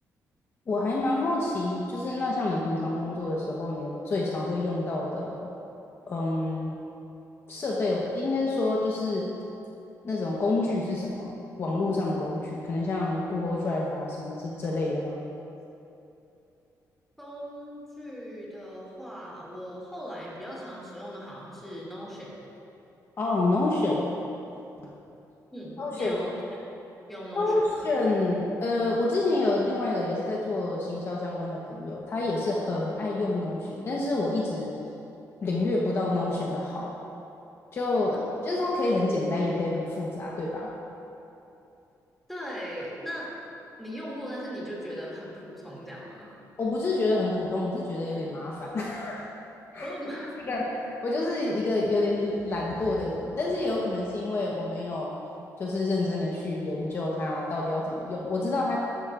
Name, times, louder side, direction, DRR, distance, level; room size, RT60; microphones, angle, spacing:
voice 1, 0.7-5.5 6.1-6.8 7.5-9.3 10.0-11.3 11.6-15.2 23.2-24.1 25.8-26.2 27.4-34.7 35.4-36.9 37.7-38.2 38.4-40.7 46.6-49.3 49.7-49.9 50.5-55.1 55.6-58.8, left 2 dB, 40° left, -3 dB, 1.0 m, -28 dB
voice 2, 17.2-22.3 25.5-26.3 27.1-27.9 38.1-38.2 42.3-43.3 43.8-46.3 49.8-50.7, equal, ahead, -6 dB, 2.5 m, -39 dB
14.0 x 11.5 x 2.5 m, 2.9 s
cardioid pair, 145°, 7 cm